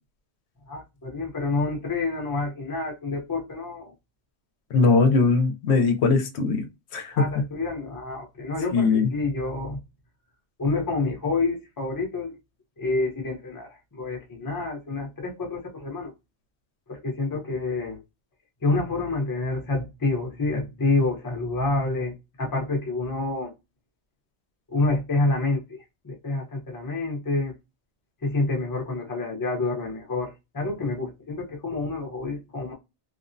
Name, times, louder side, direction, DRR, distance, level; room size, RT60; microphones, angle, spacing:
voice 1, 0.7-3.9 7.1-9.8 10.6-12.4 12.8-16.1 16.9-18.0 18.6-23.5 24.7-27.5 28.2-32.7, left 3 dB, 20° left, 0.6 m, -28 dB
voice 2, 4.7-6.7 6.9-7.1 8.7-9.1, left 4 dB, 75° left, 0.8 m, -20 dB
2.8 x 2.0 x 2.5 m
omnidirectional pair, 1.1 m